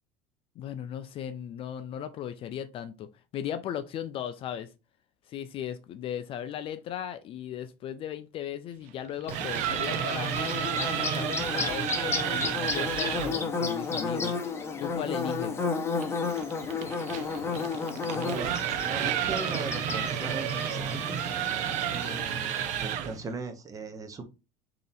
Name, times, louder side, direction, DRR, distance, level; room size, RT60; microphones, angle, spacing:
voice 1, 0.6-4.7 5.3-10.3 10.7-14.5 14.8-15.6, left 9 dB, 40° left, 0.3 m, -37 dB
sound 1, 9.1-13.4 16.0-23.2, right 9 dB, 60° right, 0.6 m, -31 dB
Bird / Buzz, 9.3-22.2, left 4 dB, 15° left, 0.7 m, -33 dB
voice 2, 17.9-21.2 21.9-24.2, right 3 dB, 25° right, 0.7 m, -39 dB
3.1 x 2.8 x 4.0 m
cardioid pair, 135°, 15 cm